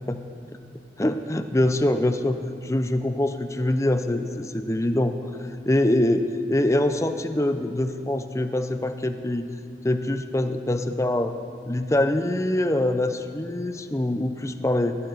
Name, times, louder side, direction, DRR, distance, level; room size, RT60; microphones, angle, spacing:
voice 1, 1.0-9.5 9.8-11.3 11.7-15.0, left 1 dB, 15° left, 8 dB, 0.6 m, -24 dB
19.0 x 14.5 x 4.0 m, 2.6 s
head